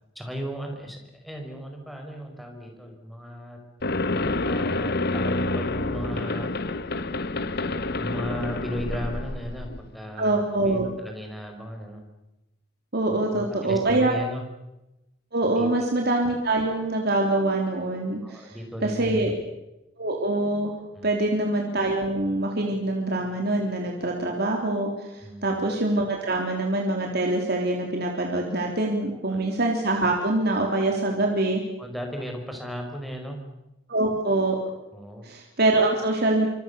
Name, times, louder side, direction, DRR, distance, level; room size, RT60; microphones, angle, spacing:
voice 1, 0.2-3.6 4.4-6.5 8.0-12.0 13.1-14.4 15.5-15.7 18.2-19.3 21.0-21.2 25.2-25.6 29.1-29.4 31.8-33.4 34.9-35.3, equal, ahead, 2 dB, 5.5 m, -36 dB
sound 1, 3.8-9.9, left 2 dB, 50° left, 1.1 m, -28 dB
voice 2, 10.2-10.9 12.9-14.1 15.3-18.6 18.8-19.3 20.0-20.7 21.0-31.6 33.9-34.6 35.2-36.5, right 2 dB, 50° right, 1 dB, 3.4 m, -24 dB
26.5 x 25.5 x 7.0 m, 0.94 s
head